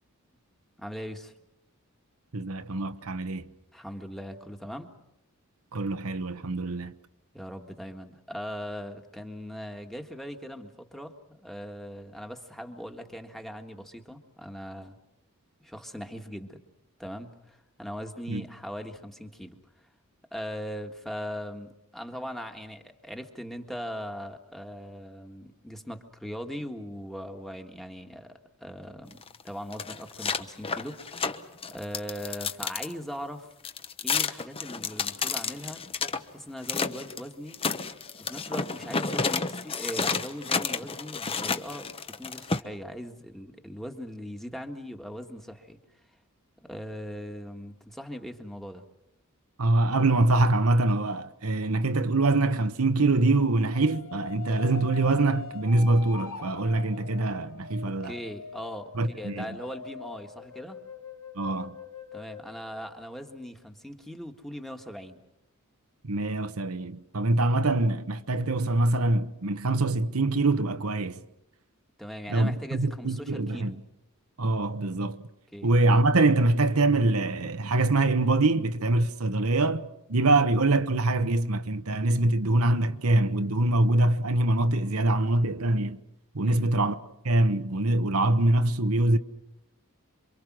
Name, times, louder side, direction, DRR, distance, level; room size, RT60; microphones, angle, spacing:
voice 1, 0.8-1.3 3.7-4.9 7.3-15.0 15.6-16.6 17.0-19.6 20.3-31.3 31.7-33.5 34.0-35.8 36.3-37.6 38.2-45.8 46.6-48.8 57.8-60.8 62.1-65.2 72.0-73.8 75.5-75.7 86.4-86.7, equal, ahead, 1.6 m, -40 dB
voice 2, 2.3-3.5 5.7-6.9 18.3-18.4 49.6-58.1 58.9-59.5 61.4-61.8 66.0-71.2 72.3-73.7 74.4-75.3 75.6-86.0 86.3-87.0 87.2-89.2, right 2 dB, 80° right, 1.1 m, -24 dB
sound 1, 29.1-32.9 33.6-36.2 36.6-37.2 37.5-42.6, left 5 dB, 25° left, 1.0 m, -30 dB
sound 2, 53.7-63.6, left 5 dB, 70° left, 2.6 m, -44 dB
27.5 x 24.5 x 6.2 m
head